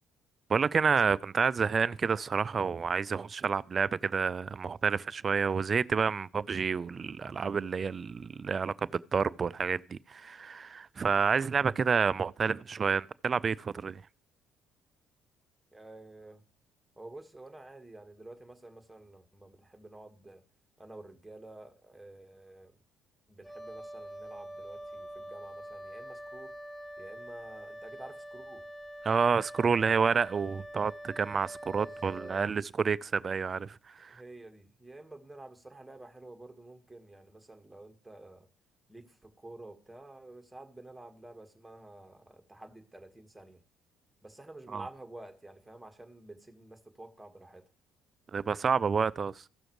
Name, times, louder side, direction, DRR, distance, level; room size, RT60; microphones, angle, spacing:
voice 1, 0.5-14.0 29.0-33.7 34.0-34.1 44.7-44.8 48.3-49.3, right 5 dB, 40° right, 0.4 m, -29 dB
voice 2, 15.7-16.4 17.0-20.4 20.8-22.7 23.3-26.5 27.0-28.6 31.7-32.4 34.1-38.5 38.9-43.6 44.2-47.6, right 2 dB, 10° right, 1.6 m, -50 dB
Wind instrument woodwind instrument, 23.4-32.5, right 1 dB, 15° left, 3.0 m, -45 dB
15.5 x 6.3 x 3.1 m
hypercardioid pair, 55°, 0 cm